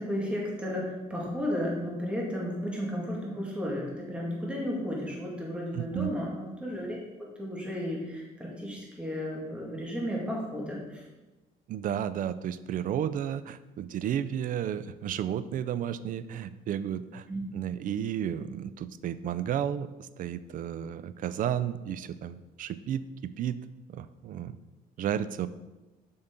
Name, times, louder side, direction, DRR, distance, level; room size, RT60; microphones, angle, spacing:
voice 1, 0.0-11.0 17.3-17.4, equal, 5° right, -4 dB, 2.2 m, -33 dB
voice 2, 5.7-6.1 11.7-17.3 17.5-23.0 23.4-23.6 23.9-24.6 25.0-25.5, right 9 dB, 55° right, 15 dB, 0.4 m, -32 dB
7.5 x 5.9 x 3.9 m, 1.1 s
cardioid pair, 110°, 17 cm